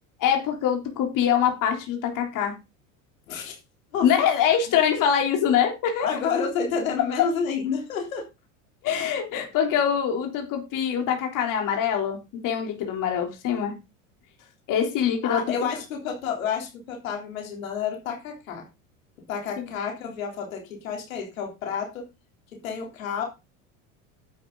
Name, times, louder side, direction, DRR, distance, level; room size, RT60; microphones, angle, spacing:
voice 1, 0.2-2.6 4.0-6.1 8.8-13.8 14.7-15.4 19.6-19.7, left 8 dB, 50° left, 3 dB, 3.6 m, -24 dB
voice 2, 3.3-3.6 3.9-4.1 6.0-8.3 15.2-18.7 19.3-22.1 22.6-23.2, left 6 dB, 85° left, 2 dB, 3.6 m, -30 dB
11.0 x 8.7 x 3.9 m, 0.26 s
hypercardioid pair, 90°, 40 cm